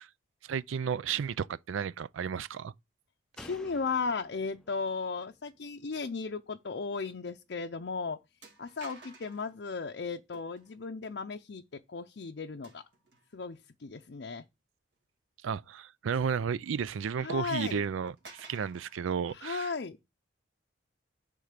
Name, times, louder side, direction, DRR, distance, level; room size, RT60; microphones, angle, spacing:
voice 1, 0.4-2.7 15.4-19.7, right 6 dB, 85° right, 0.4 m, -33 dB
voice 2, 3.4-8.2 8.6-12.8 13.3-14.4 17.2-17.8 19.3-20.0, left 4 dB, 60° left, 0.5 m, -36 dB
Slam, 3.4-6.8 7.1-7.2, left 1 dB, 5° left, 0.5 m, -55 dB
sound 1, 7.0-7.2 7.5-7.6 8.4-9.5 10.3-10.8 12.6-13.4 14.0-14.1 16.1-16.9 17.2-17.3 17.7-19.0, right 3 dB, 65° right, 2.0 m, -54 dB
10.0 x 3.8 x 6.6 m
head